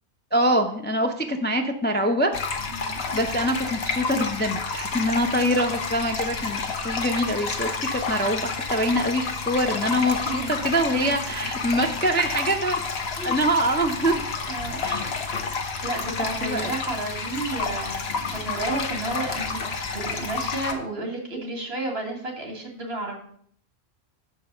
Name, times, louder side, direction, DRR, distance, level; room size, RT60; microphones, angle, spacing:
voice 1, 0.3-2.3 3.1-12.8 13.2-14.2 14.8-15.1 16.4-16.7, equal, 15° left, 4 dB, 0.4 m, -24 dB
sound 1, 2.3-20.7, left 4 dB, 80° left, 1.2 m, -30 dB
voice 2, 2.7-3.2 10.3-10.5 10.9-11.0 13.2-13.4 14.5-14.8 15.8-18.0 18.4-23.2, right 2 dB, 75° right, 1 dB, 2.1 m, -32 dB
6.5 x 4.6 x 6.5 m, 0.62 s
omnidirectional pair, 1.1 m